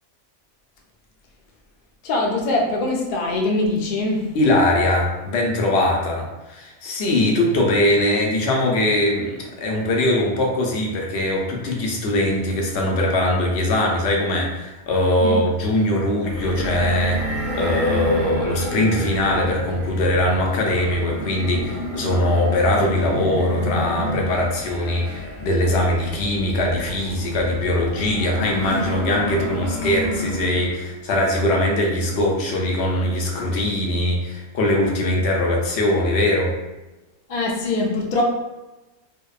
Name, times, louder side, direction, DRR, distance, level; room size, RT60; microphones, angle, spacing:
voice 1, 2.0-4.4 15.2-15.4 37.3-38.2, left 2 dB, 85° left, -1 dB, 0.4 m, -22 dB
voice 2, 4.3-17.3 17.5-36.5, left 1 dB, 65° left, -1 dB, 0.7 m, -21 dB
sound 1, 16.2-30.8, equal, 60° right, 0.5 m, -30 dB
2.7 x 2.0 x 2.3 m, 1.1 s
omnidirectional pair, 1.3 m